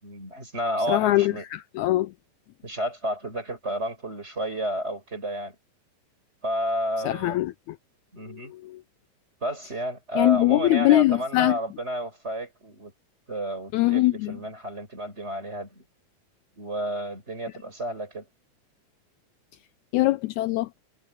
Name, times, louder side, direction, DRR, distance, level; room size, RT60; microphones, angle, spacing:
voice 1, 0.0-1.4 2.6-5.5 6.4-7.4 8.1-8.5 9.4-12.9 13.3-15.8 16.6-18.3, equal, 20° right, 4.8 m, -31 dB
voice 2, 0.9-2.1 7.0-7.5 8.6-8.8 10.2-11.6 13.7-14.4 19.9-20.7, left 17 dB, 80° left, 1.8 m, -22 dB
omnidirectional pair, 3.6 m